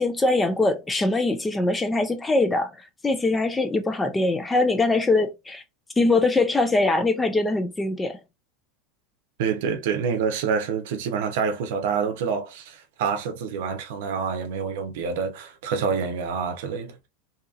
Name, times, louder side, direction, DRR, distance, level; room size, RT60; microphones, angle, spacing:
voice 1, 0.0-5.6 6.0-8.2, left 2 dB, 10° left, 0.3 m, -22 dB
voice 2, 9.4-17.1, right 6 dB, 70° right, 0.6 m, -27 dB
2.7 x 2.6 x 2.4 m
supercardioid pair, 140°, 0 cm